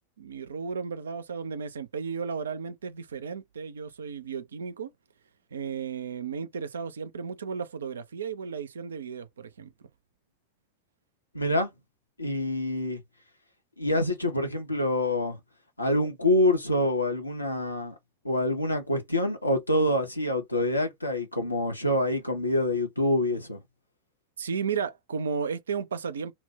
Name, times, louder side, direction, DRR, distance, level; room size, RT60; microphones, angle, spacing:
voice 1, 0.2-4.9 5.5-9.7 24.4-26.3, right 6 dB, 70° right, 0.3 m, -34 dB
voice 2, 11.3-11.7 12.2-13.0 13.8-15.4 15.8-17.9 18.2-23.6, left 1 dB, 85° left, 0.7 m, -26 dB
2.2 x 2.0 x 3.5 m
figure-of-eight pair, 90°, 0 cm